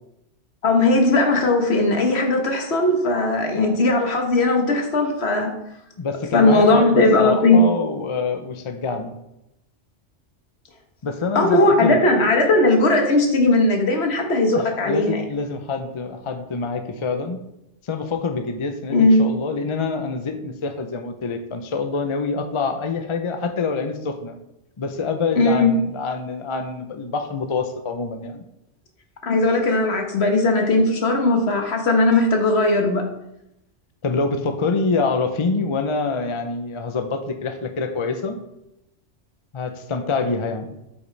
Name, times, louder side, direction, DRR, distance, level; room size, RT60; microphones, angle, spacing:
voice 1, 0.6-5.5 6.3-7.6 11.3-15.2 18.9-19.3 25.4-25.8 29.2-33.0, left 2 dB, 60° left, 3 dB, 1.4 m, -18 dB
voice 2, 6.0-9.2 11.0-12.0 14.5-17.4 17.8-24.4 24.8-28.4 34.0-38.4 39.5-40.8, left 4 dB, 40° left, 6 dB, 0.5 m, -26 dB
8.1 x 5.7 x 3.3 m, 0.85 s
omnidirectional pair, 1.2 m